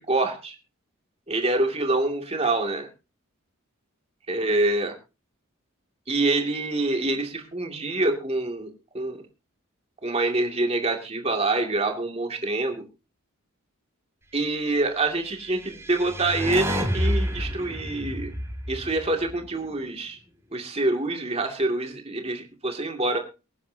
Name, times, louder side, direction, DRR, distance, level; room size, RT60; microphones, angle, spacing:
voice 1, 0.1-0.6 1.3-2.9 4.3-4.9 6.1-8.7 8.9-9.2 10.0-12.8 14.3-18.3 18.7-20.2 20.5-23.2, right 2 dB, 25° right, 4 dB, 2.4 m, -26 dB
sound 1, 15.4-19.8, equal, 10° right, 3.0 m, -29 dB
24.0 x 10.0 x 2.8 m, 0.29 s
head